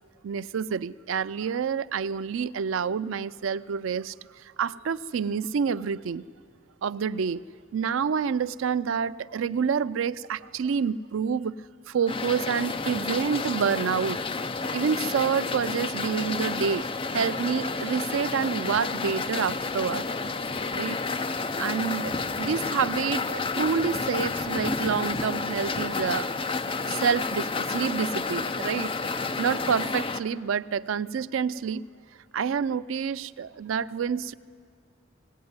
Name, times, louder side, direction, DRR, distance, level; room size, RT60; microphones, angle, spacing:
voice 1, 0.2-6.3 6.8-7.4 7.7-11.6 11.9-14.2 14.7-16.9 17.1-20.0 20.7-21.0 21.6-26.3 26.8-28.9 29.2-31.8 32.3-34.3, right 6 dB, 85° right, 0.4 m, -28 dB
sound 1, 12.1-30.2, left 4 dB, 25° left, 0.6 m, -30 dB
18.5 x 17.5 x 9.5 m
head